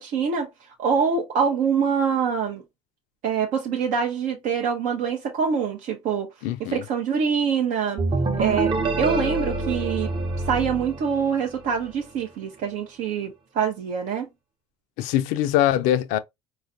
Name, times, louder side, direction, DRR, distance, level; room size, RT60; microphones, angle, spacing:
voice 1, 0.0-2.6 3.2-6.3 6.6-8.0 8.4-10.1 10.4-14.3, right 6 dB, 55° right, 0.7 m, -25 dB
voice 2, 6.4-6.8 15.0-16.2, left 12 dB, 60° left, 0.4 m, -22 dB
sound 1, 8.0-11.7, right 3 dB, 30° right, 0.9 m, -26 dB
4.3 x 2.3 x 2.5 m
figure-of-eight pair, 60°, 16 cm